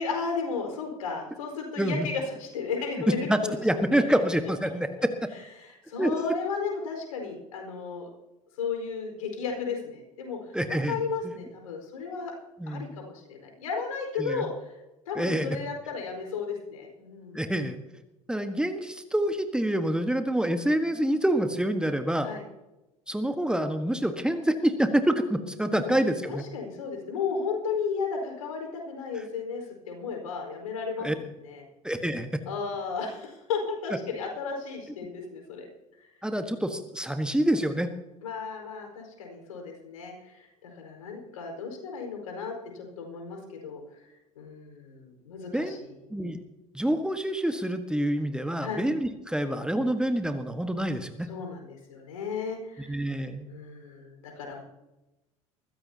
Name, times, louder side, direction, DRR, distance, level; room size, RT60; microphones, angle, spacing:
voice 1, 0.0-3.6 4.0-4.1 5.3-8.1 8.6-12.3 12.7-14.7 15.1-17.4 22.2-22.4 25.6-31.1 31.4-31.6 32.5-35.7 36.0-36.1 38.2-44.1 44.3-45.9 48.6-48.8 51.2-54.6, left 5 dB, 75° left, 2 dB, 4.9 m, -34 dB
voice 2, 3.3-5.1 6.0-6.1 10.5-11.0 12.6-12.9 14.2-14.5 15.2-15.6 17.3-17.8 18.3-22.3 23.1-26.4 31.0-31.1 31.8-32.4 36.2-37.9 45.5-45.8 46.1-46.4 46.7-51.3 52.8-53.5, right 1 dB, 5° right, 8 dB, 1.4 m, -27 dB
21.5 x 15.0 x 2.9 m, 0.98 s
hypercardioid pair, 70°, 18 cm